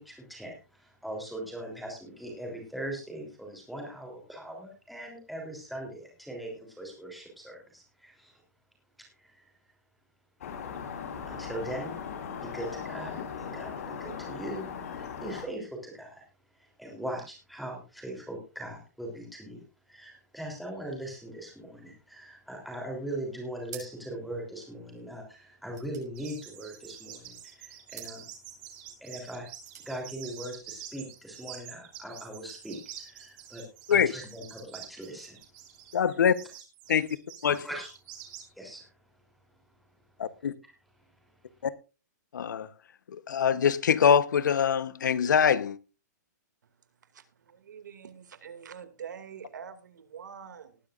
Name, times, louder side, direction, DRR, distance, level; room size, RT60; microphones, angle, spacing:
voice 1, 0.0-8.4 9.2-9.5 11.3-11.9 12.4-16.2 16.6-28.2 29.0-29.5 29.8-33.6 33.9-35.4 37.6-37.9 38.5-38.9, right 1 dB, ahead, 3.4 m, -40 dB
sound 1, 10.4-15.5, left 7 dB, 50° left, 3.6 m, -38 dB
sound 2, 23.6-24.2 24.5-24.6 24.9-27.0 27.9-28.2 29.4-29.9, right 8 dB, 65° right, 6.5 m, -49 dB
sound 3, 26.1-38.5, right 11 dB, 30° right, 2.6 m, -47 dB
voice 2, 35.9-36.3 36.9-37.1 37.4-37.6 40.2-40.5 41.6-41.7 42.3-42.7 43.1-45.8, left 7 dB, 85° left, 1.0 m, -24 dB
voice 3, 47.1-50.8, right 7 dB, 80° right, 2.3 m, -45 dB
19.5 x 10.0 x 2.5 m
hypercardioid pair, 175°, 10 cm